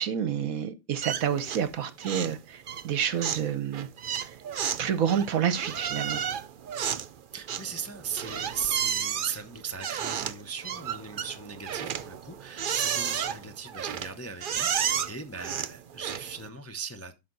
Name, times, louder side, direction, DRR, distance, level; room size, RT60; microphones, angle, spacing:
voice 1, 0.0-3.9 4.2-4.4 4.8-6.3, right 8 dB, 65° right, 1.2 m, -29 dB
sound 1, 1.0-1.8 2.0-2.4 2.7-16.5, right 8 dB, 80° right, 0.4 m, -32 dB
voice 2, 7.3-17.1, right 6 dB, 15° left, 0.6 m, -38 dB
12.5 x 5.9 x 4.0 m
omnidirectional pair, 1.7 m